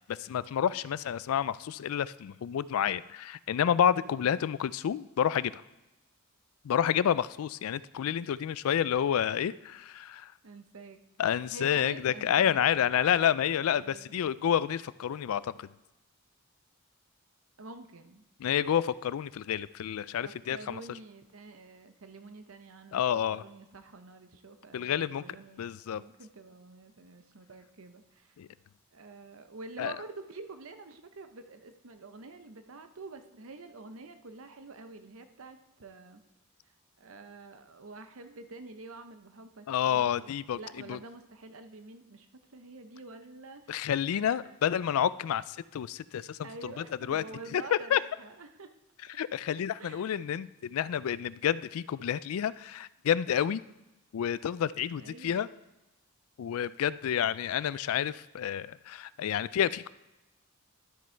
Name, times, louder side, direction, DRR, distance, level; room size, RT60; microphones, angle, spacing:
voice 1, 0.1-5.6 6.6-10.3 11.2-15.7 18.4-20.8 22.9-23.4 24.7-25.2 25.6-26.0 28.4-28.5 29.8-29.9 39.7-40.6 40.9-41.0 43.7-46.5 47.1-47.2 47.5-48.0 49.2-53.6 54.1-55.5 56.4-59.9, left 9 dB, 75° left, 18 dB, 0.3 m, -29 dB
voice 2, 4.0-4.4 10.4-11.0 11.5-12.9 13.8-14.1 17.6-18.2 20.2-23.0 23.3-28.4 28.9-36.2 36.6-44.8 46.4-48.7 49.8-50.2 55.0-55.4, right 3 dB, 70° right, 8 dB, 0.8 m, -48 dB
12.5 x 6.2 x 4.4 m, 1.0 s
head